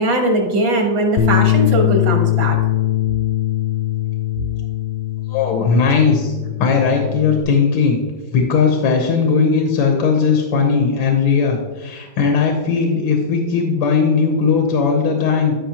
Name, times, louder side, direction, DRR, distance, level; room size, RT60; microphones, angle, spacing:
voice 1, 0.0-2.6, right 1 dB, 70° right, 2 dB, 2.2 m, -19 dB
Bass guitar, 1.2-7.4, left 14 dB, 75° left, 1.1 m, -20 dB
voice 2, 5.3-6.3 6.6-8.0 8.3-15.5, left 5 dB, 90° left, 2 dB, 1.7 m, -17 dB
13.0 x 5.6 x 2.9 m, 1.3 s
omnidirectional pair, 2.1 m